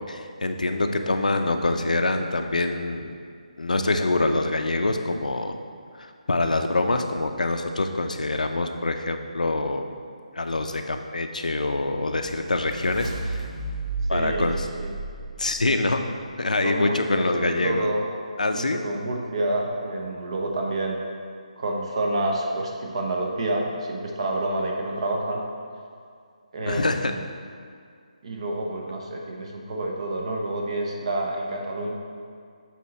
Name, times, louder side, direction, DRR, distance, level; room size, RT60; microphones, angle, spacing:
voice 1, 0.1-3.1 3.6-5.6 6.0-9.9 10.3-13.4 14.1-14.7 15.4-16.0 16.4-17.9 18.4-18.8 26.7-27.1, left 2 dB, 80° left, 6 dB, 0.6 m, -25 dB
sound 1, 11.8-16.0, right 2 dB, 70° right, 1.5 m, -33 dB
voice 2, 14.1-14.5 14.8-14.9 16.6-18.1 18.5-21.0 21.6-25.4 26.5-27.3 28.2-31.9, right 1 dB, 50° right, 0 dB, 0.9 m, -28 dB
7.4 x 4.2 x 4.1 m, 2.2 s
figure-of-eight pair, 155°, 4 cm